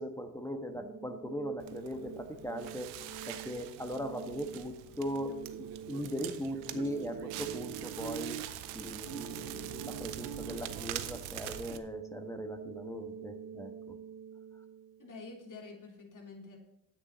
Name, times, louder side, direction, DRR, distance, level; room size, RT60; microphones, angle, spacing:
voice 1, 0.0-2.9 3.3-8.4 8.7-14.0, equal, 10° left, 5 dB, 1.4 m, -39 dB
sound 1, 0.8-15.8, right 6 dB, 35° right, 1.2 m, -48 dB
Crackle, 1.6-11.8, right 11 dB, 90° right, 0.7 m, -43 dB
voice 2, 15.0-16.6, left 4 dB, 50° left, 0 dB, 3.6 m, -48 dB
9.7 x 8.8 x 4.2 m, 0.81 s
hypercardioid pair, 45°, 39 cm